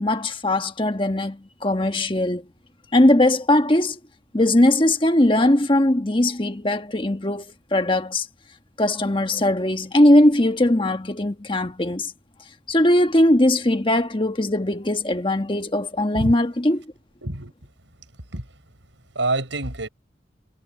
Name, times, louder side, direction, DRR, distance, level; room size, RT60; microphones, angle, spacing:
voice 1, 0.0-2.5 2.9-4.0 4.3-7.4 7.7-8.3 8.8-12.1 12.7-16.8, left 1 dB, 25° left, 1.3 m, -19 dB
voice 2, 17.2-17.7 18.3-18.5 19.1-19.9, right 2 dB, 85° right, 6.2 m, -27 dB
head